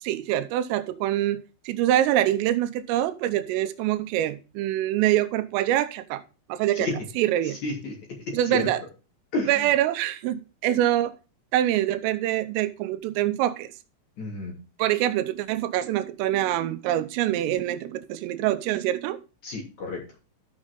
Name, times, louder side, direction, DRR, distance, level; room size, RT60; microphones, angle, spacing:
voice 1, 0.0-6.2 6.5-6.9 7.2-7.6 8.3-8.8 9.5-11.2 11.5-13.7 14.8-19.2, right 13 dB, 85° right, 3.3 m, -25 dB
voice 2, 7.4-7.9 8.5-8.6 9.3-9.7 14.2-14.5 19.4-20.0, left 2 dB, 40° left, 3.8 m, -31 dB
13.0 x 6.3 x 3.7 m
omnidirectional pair, 5.8 m